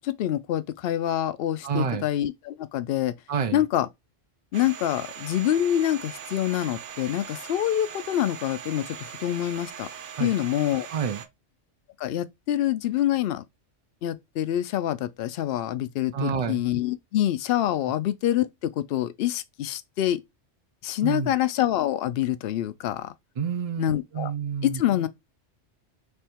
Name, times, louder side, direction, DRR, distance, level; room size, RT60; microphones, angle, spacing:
voice 1, 0.0-3.1 3.5-3.9 4.5-9.9 10.2-10.9 12.0-13.4 14.0-18.5 18.8-20.2 20.8-23.1 23.8-24.3 24.6-25.1, left 12 dB, 65° left, 0.7 m, -26 dB
voice 2, 1.6-2.0 3.3-3.6 10.2-10.3 10.9-11.2 16.1-16.6 21.0-21.3 23.4-24.8, right 6 dB, 55° right, 0.4 m, -28 dB
Domestic sounds home sounds, 4.5-11.3, right 8 dB, 85° right, 1.0 m, -40 dB
3.5 x 3.3 x 4.4 m
omnidirectional pair, 1.2 m